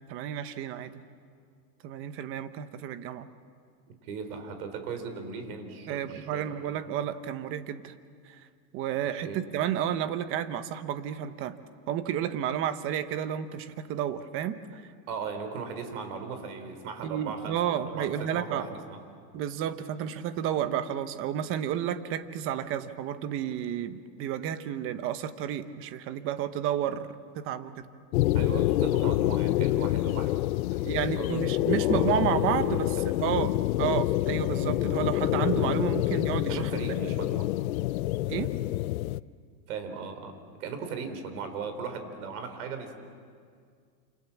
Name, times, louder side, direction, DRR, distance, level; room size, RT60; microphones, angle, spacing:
voice 1, 0.1-1.0 1.8-3.3 5.9-7.9 8.2-8.5 8.7-11.6 11.9-14.9 17.0-18.7 19.3-27.1 27.3-27.9 30.8-36.7 38.3-38.5, right 10 dB, 25° right, 11 dB, 1.0 m, -31 dB
voice 2, 4.0-6.7 9.2-9.4 15.1-19.0 28.3-30.3 30.7-30.9 31.2-31.4 31.8-33.4 36.5-37.5 39.7-42.9, right 5 dB, 60° right, 7 dB, 4.3 m, -38 dB
sound 1, 28.1-39.2, left 16 dB, 55° left, 0.6 m, -27 dB
28.5 x 28.0 x 7.3 m, 2.1 s
supercardioid pair, 155°, 50 cm